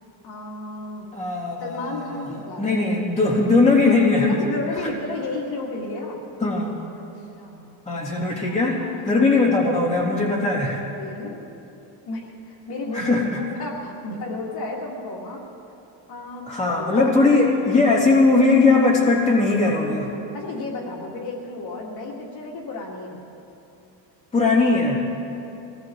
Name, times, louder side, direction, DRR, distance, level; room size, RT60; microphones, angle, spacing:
voice 1, 0.2-1.1 1.6-2.8 4.3-6.2 7.1-7.8 8.5-9.1 10.9-11.4 12.1-15.5 16.1-16.5 16.9-17.5 20.3-23.2, left 2 dB, 55° left, -3 dB, 2.4 m, -33 dB
voice 2, 1.1-2.3 2.6-4.4 4.8-4.9 6.4-6.7 7.8-10.8 12.9-13.4 16.5-20.2 24.3-25.0, left 3 dB, 15° left, -5 dB, 2.9 m, -19 dB
24.5 x 19.0 x 3.2 m, 2.9 s
cardioid pair, 150°, 46 cm